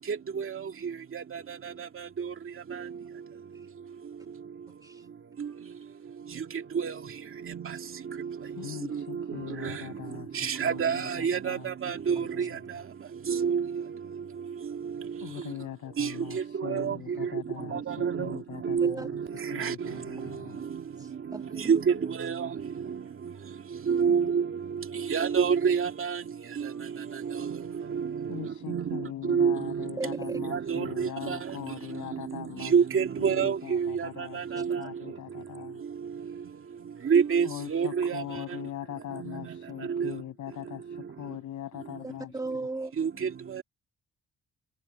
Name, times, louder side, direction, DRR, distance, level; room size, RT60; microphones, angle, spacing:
voice 1, 8.5-11.7 12.1-12.6 15.2-19.1 19.5-20.7 24.1-24.2 28.3-35.8 37.4-42.3, left 11 dB, 75° left, 6.8 m, -41 dB
voice 2, 10.3-12.5 13.3-13.8 16.0-17.3 17.7-18.4 18.6-19.7 21.7-22.5 23.9-24.5 25.1-26.2 27.4-27.6 27.9-28.1 28.7-31.4 32.7-34.8 37.1-38.2 39.2-39.4 39.9-40.1 43.0-43.6, right 6 dB, 45° right, 2.2 m, -27 dB
voice 3, 21.0-22.1 30.0-30.4 42.0-42.9, right 2 dB, 10° right, 2.1 m, -37 dB
cardioid pair, 90°, 30 cm